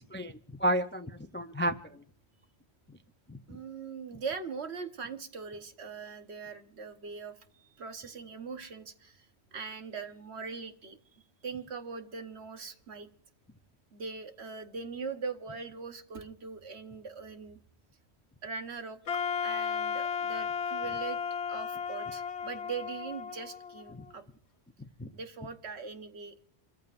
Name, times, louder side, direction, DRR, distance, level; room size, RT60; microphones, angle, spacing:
voice 1, 0.0-2.0 3.3-3.6 23.9-24.0 25.0-25.1, right 1 dB, 15° left, 9 dB, 0.4 m, -32 dB
voice 2, 3.5-13.1 13.9-17.6 18.4-21.2 21.5-24.2 25.1-26.5, right 5 dB, 70° right, 7 dB, 1.5 m, -41 dB
Wind instrument woodwind instrument, 19.1-24.1, left 7 dB, 75° left, 1.2 m, -34 dB
28.0 x 14.5 x 2.6 m, 0.64 s
omnidirectional pair, 1.2 m